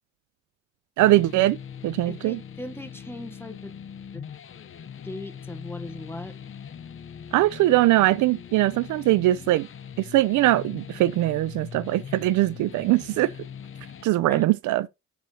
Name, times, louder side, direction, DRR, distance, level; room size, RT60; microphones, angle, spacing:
sound 1, 1.0-14.0, left 8 dB, 45° left, 0.8 m, -41 dB
voice 1, 1.0-1.6 1.8-2.4 7.3-9.7 10.0-13.3 14.0-14.9, right 16 dB, 80° right, 0.5 m, -21 dB
voice 2, 2.1-3.7 4.1-4.3 5.0-6.3 14.3-14.5, left 1 dB, 5° left, 1.0 m, -38 dB
7.0 x 6.1 x 2.8 m
cardioid pair, 90°, 30 cm